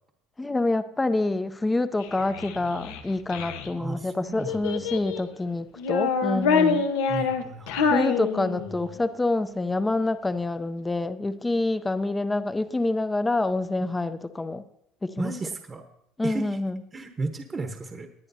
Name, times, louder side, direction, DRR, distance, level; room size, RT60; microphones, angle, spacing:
voice 1, 0.4-6.9 7.9-14.6 15.0-15.3 16.2-16.8, left 2 dB, 15° left, 11 dB, 0.6 m, -27 dB
Child speech kid speaking, 2.0-3.7 4.4-5.3 5.8-8.9, left 5 dB, 90° left, 1.0 m, -26 dB
voice 2, 3.8-4.8 7.1-7.9 15.2-15.8 16.2-16.6 16.9-18.1, right 3 dB, 25° right, 5 dB, 1.0 m, -34 dB
19.5 x 9.5 x 2.7 m, 0.74 s
supercardioid pair, 105°, 0 cm